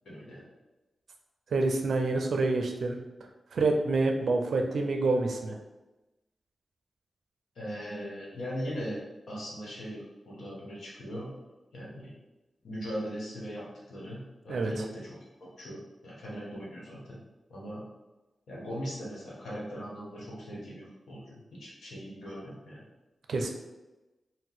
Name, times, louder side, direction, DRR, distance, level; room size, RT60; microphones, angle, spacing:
voice 1, 0.0-0.4 7.5-9.0 9.3-11.3 11.7-12.1 12.6-17.2 17.5-17.8 18.5-22.8, equal, 85° left, -5 dB, 1.0 m, -39 dB
voice 2, 1.5-3.0 3.5-5.6 14.5-14.7 23.3-23.5, right 3 dB, 80° right, 3 dB, 0.4 m, -27 dB
2.8 x 2.1 x 3.9 m, 1.1 s
cardioid pair, 55°, 0 cm